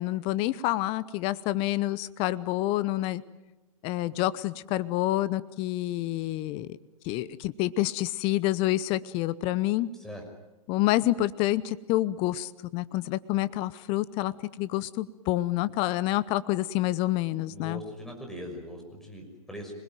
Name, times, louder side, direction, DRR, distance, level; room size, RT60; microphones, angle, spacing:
voice 1, 0.0-3.2 3.8-6.8 7.0-9.9 10.7-14.3 14.6-17.8, left 16 dB, 30° left, 17 dB, 0.9 m, -28 dB
voice 2, 17.5-19.7, equal, ahead, 2 dB, 6.1 m, -41 dB
27.0 x 20.5 x 9.2 m, 1.0 s
figure-of-eight pair, 120°, 19 cm